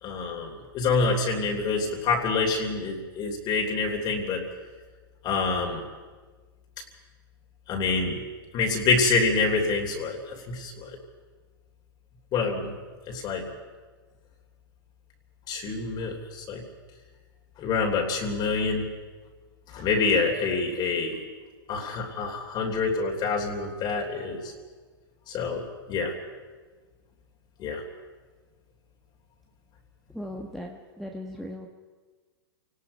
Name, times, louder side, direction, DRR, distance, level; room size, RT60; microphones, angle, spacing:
voice 1, 0.0-4.4 5.2-5.8 7.7-8.2 8.5-10.9 12.3-12.7 13.1-13.5 15.5-16.6 17.6-18.9 19.7-21.2 21.7-24.5 25.3-26.1 27.6-27.8, left 4 dB, 35° left, 1 dB, 3.2 m, -26 dB
voice 2, 30.1-31.7, left 1 dB, ahead, 0 dB, 1.4 m, -38 dB
28.0 x 18.5 x 5.4 m, 1.4 s
hypercardioid pair, 130°, 13 cm